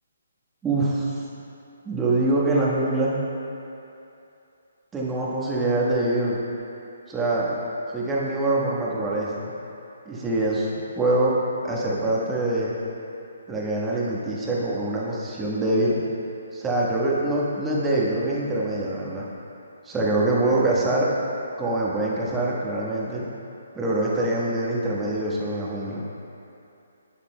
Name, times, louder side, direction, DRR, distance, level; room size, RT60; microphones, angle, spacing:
voice 1, 0.6-1.2 1.8-3.2 4.9-6.4 7.1-7.6 7.9-9.5 10.0-11.3 11.6-12.8 13.5-16.0 16.5-19.3 19.8-21.1 21.6-23.2 23.7-26.0, right 2 dB, 10° right, -5 dB, 1.3 m, -24 dB
11.0 x 9.0 x 2.2 m, 2.7 s
figure-of-eight pair, 135°, 0 cm